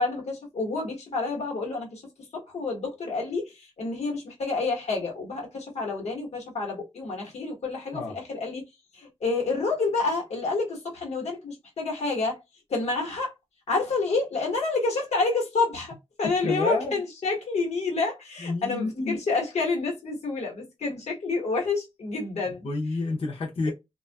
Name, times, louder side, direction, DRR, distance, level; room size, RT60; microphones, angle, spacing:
voice 1, 0.0-2.0 2.3-8.6 8.9-12.4 12.7-13.3 13.7-22.7, left 3 dB, 90° left, 1.0 m, -28 dB
voice 2, 16.2-17.0 18.4-19.2 22.6-23.7, left 3 dB, 60° left, 0.6 m, -29 dB
2.5 x 2.3 x 2.2 m
wide cardioid pair, 150°, 11 cm